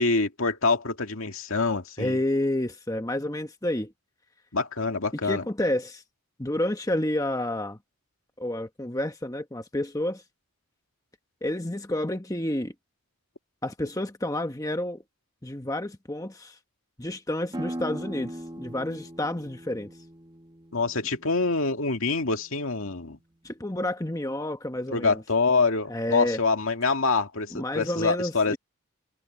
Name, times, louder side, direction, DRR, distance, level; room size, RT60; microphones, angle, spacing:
voice 1, 0.0-2.2 4.5-5.4 20.7-23.2 24.9-28.6, left 3 dB, 70° left, 2.2 m, -25 dB
voice 2, 2.0-3.9 5.2-6.0 6.4-7.8 8.4-10.2 11.4-12.7 13.6-15.0 15.4-16.6 17.0-19.9 23.4-25.2 25.9-26.4 27.5-28.6, left 1 dB, 15° left, 1.2 m, -29 dB
sound 1, 17.5-22.9, right 1 dB, 20° right, 1.5 m, -40 dB
head